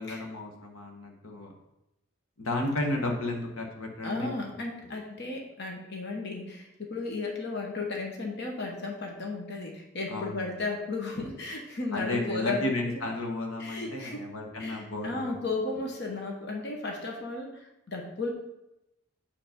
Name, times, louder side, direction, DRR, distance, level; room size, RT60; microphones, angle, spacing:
voice 1, 0.0-1.5 2.4-4.5 10.1-10.5 11.9-15.3, left 2 dB, 85° left, 2 dB, 1.3 m, -33 dB
voice 2, 4.0-12.7 13.6-14.2 14.6-17.6 17.9-18.3, left 3 dB, 55° left, 0 dB, 1.2 m, -34 dB
7.2 x 4.9 x 5.1 m, 0.90 s
head